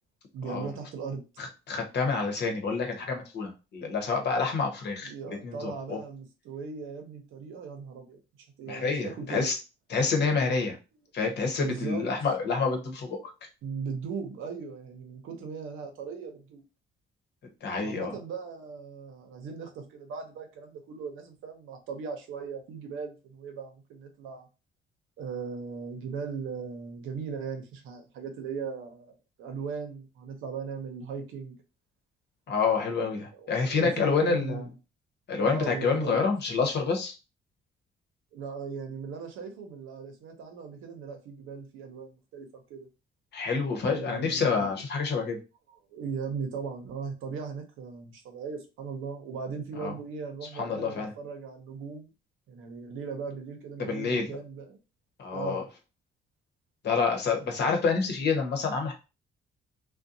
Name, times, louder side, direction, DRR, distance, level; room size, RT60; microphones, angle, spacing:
voice 1, 0.3-1.2 5.0-8.2 8.6-9.5 11.6-12.0 13.6-16.6 17.8-24.5 25.2-31.6 33.3-34.7 35.4-36.2 38.3-42.9 43.9-44.7 45.7-52.1 52.5-54.8 55.3-55.6, right 5 dB, 85° right, 0.7 m, -38 dB
voice 2, 1.4-5.1 5.4-6.0 8.7-9.6 9.9-10.8 11.1-13.3 17.6-18.1 32.5-34.6 35.3-37.1 43.3-45.4 49.8-49.9 50.6-51.1 53.9-54.3 55.2-55.6 56.8-58.9, left 4 dB, 60° left, 0.9 m, -28 dB
2.5 x 2.2 x 2.6 m
cardioid pair, 90°, 20 cm